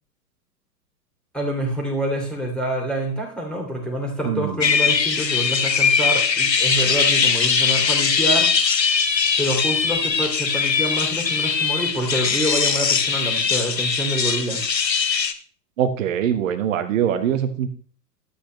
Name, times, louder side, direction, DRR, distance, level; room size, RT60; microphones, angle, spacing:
voice 1, 1.3-8.5 9.4-14.6, right 1 dB, ahead, 0 dB, 2.5 m, -26 dB
voice 2, 4.2-4.6 15.8-17.7, right 9 dB, 50° right, 10 dB, 1.4 m, -23 dB
sound 1, 4.6-15.3, left 6 dB, 90° left, 1.0 m, -21 dB
11.5 x 8.2 x 3.2 m, 0.42 s
figure-of-eight pair, 105°, 49 cm